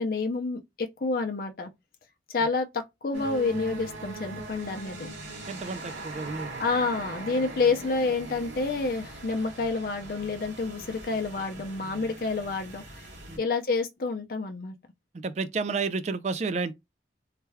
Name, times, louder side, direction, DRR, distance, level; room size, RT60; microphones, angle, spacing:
voice 1, 0.0-1.7 2.3-5.1 6.6-13.0 13.4-14.7, left 3 dB, 50° left, 0.5 m, -29 dB
sound 1, 3.1-13.4, right 2 dB, 90° right, 1.4 m, -41 dB
voice 2, 5.4-6.6 13.3-13.4 15.1-16.7, right 4 dB, 35° right, 0.3 m, -31 dB
3.2 x 2.2 x 3.3 m
head